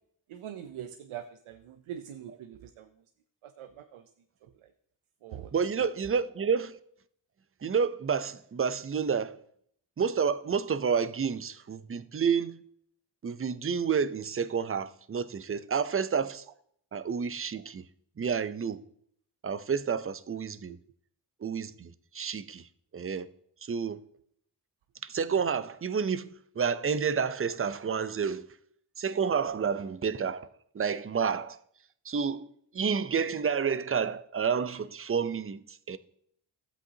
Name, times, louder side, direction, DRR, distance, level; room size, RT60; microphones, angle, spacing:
voice 1, 0.3-2.9 3.4-4.0 4.6-4.7 5.2-5.5 20.7-20.8, right 10 dB, 85° right, 0.6 m, -43 dB
voice 2, 5.5-6.8 7.6-9.4 10.0-12.6 13.2-16.4 16.9-17.8 18.2-18.8 19.4-20.8 21.4-22.7 22.9-23.3 23.6-24.0 25.0-26.3 26.6-28.5 29.0-30.5 30.7-31.6 32.0-32.5 32.7-36.0, right 6 dB, 30° right, 0.6 m, -29 dB
12.0 x 8.0 x 2.8 m
cardioid pair, 45°, 48 cm